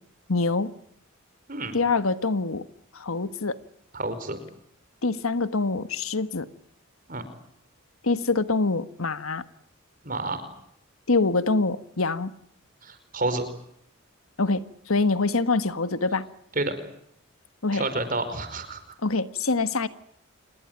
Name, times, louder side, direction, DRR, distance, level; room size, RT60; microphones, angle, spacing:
voice 1, 0.3-0.7 1.7-2.6 2.9-3.6 5.0-6.5 8.0-9.4 11.1-12.3 14.4-16.3 17.6-17.9 19.0-19.9, left 3 dB, 85° left, 1.5 m, -25 dB
voice 2, 3.9-4.4 7.1-7.2 10.0-10.4 12.8-13.4 16.5-16.7 17.7-18.8, right 2 dB, 40° right, 4.9 m, -29 dB
27.5 x 21.5 x 9.1 m
head